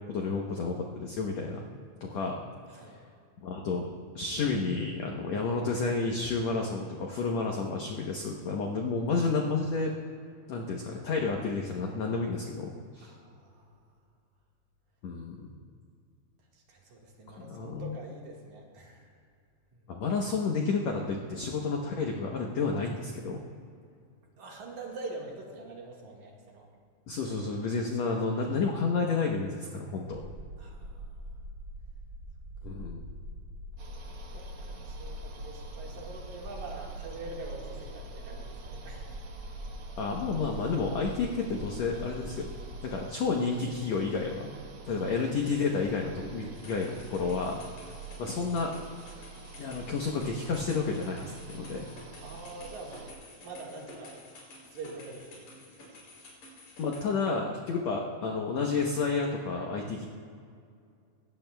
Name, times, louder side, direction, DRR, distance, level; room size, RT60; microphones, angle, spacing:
voice 1, 0.1-1.7 2.0-2.4 3.4-9.9 10.5-13.1 15.0-15.5 17.3-17.9 19.9-23.4 27.1-30.2 32.6-33.0 40.0-42.5 42.8-44.5 44.9-47.6 48.2-48.7 49.6-51.9 56.8-60.1, left 4 dB, 75° left, 0 dB, 1.6 m, -31 dB
voice 2, 13.0-13.7 16.5-19.1 19.7-20.0 24.4-26.7 28.1-28.2 30.6-31.3 34.0-39.2 44.9-45.1 47.9-48.0 52.2-53.1 53.4-54.2 54.6-55.5 55.8-55.9, right 2 dB, 60° right, -2 dB, 2.7 m, -45 dB
sound 1, 30.1-42.9, equal, 30° right, 2.2 m, -43 dB
sound 2, 33.8-53.1, right 4 dB, 90° right, 1.2 m, -47 dB
sound 3, 46.5-57.0, left 2 dB, 50° left, 4.6 m, -51 dB
21.0 x 17.0 x 2.3 m, 2.3 s
omnidirectional pair, 4.4 m